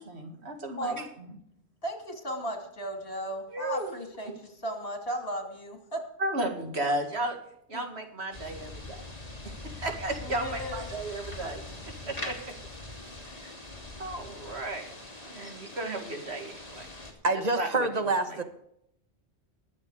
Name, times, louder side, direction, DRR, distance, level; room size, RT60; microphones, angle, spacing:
voice 1, 0.0-1.4 3.5-3.9 6.2-7.4 7.7-9.0 9.4-12.4 13.4-13.5 14.0-14.9 15.2-16.9 17.6-17.9 18.3-18.4, right 1 dB, 70° right, 4 dB, 2.5 m, -34 dB
voice 2, 1.8-6.0 7.7-7.8 10.2-10.8 13.2-13.4, equal, 55° left, 4 dB, 3.0 m, -36 dB
sound 1, 8.3-17.1, left 2 dB, 35° left, 2.8 m, -42 dB
voice 3, 17.2-18.4, right 3 dB, 35° right, 8 dB, 1.4 m, -26 dB
21.0 x 7.2 x 4.9 m, 0.74 s
omnidirectional pair, 1.2 m